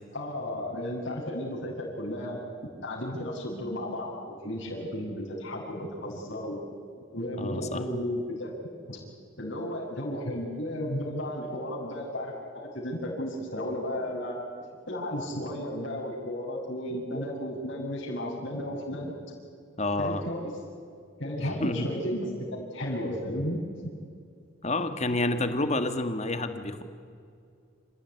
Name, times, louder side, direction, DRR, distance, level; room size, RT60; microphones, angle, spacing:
voice 1, 0.1-2.4 2.8-6.6 7.1-8.5 8.9-9.0 9.4-14.5 14.9-19.1 20.0-20.5 21.2-23.6, left 1 dB, 60° left, -5 dB, 6.5 m, -33 dB
voice 2, 7.4-7.8 19.8-20.2 21.4-21.9 24.6-26.8, left 2 dB, 30° left, 9 dB, 1.6 m, -29 dB
27.5 x 16.0 x 9.7 m, 2.4 s
head